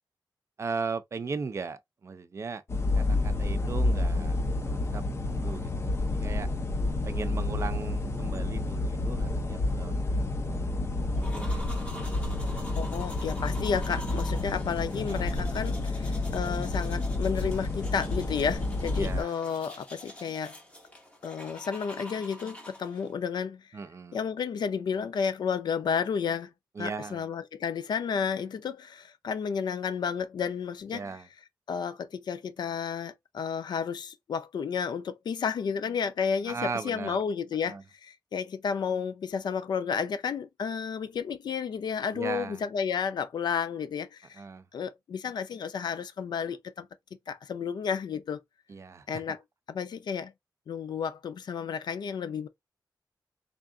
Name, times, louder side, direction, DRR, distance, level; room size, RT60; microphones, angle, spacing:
voice 1, 0.6-2.6 2.9-4.4 4.6-5.9 6.2-6.5 7.1-10.4 10.9-11.6 15.1-15.3 18.9-19.3 23.7-24.2 26.8-27.2 30.9-31.3 36.5-37.2 37.7-37.8 42.1-42.6 44.3-44.6 48.7-49.1, right 4 dB, 40° right, 0.4 m, -37 dB
sound 1, 2.7-19.2, left 2 dB, 35° left, 0.7 m, -29 dB
sound 2, 11.1-23.1, equal, 15° left, 1.3 m, -46 dB
voice 2, 12.7-20.6 21.2-23.6 24.1-26.5 26.8-31.2 31.7-44.4 44.7-46.9 47.3-48.4 49.1-49.4 49.7-50.3 50.7-52.5, left 6 dB, 75° left, 0.5 m, -32 dB
3.5 x 2.4 x 3.6 m
wide cardioid pair, 165°, 7 cm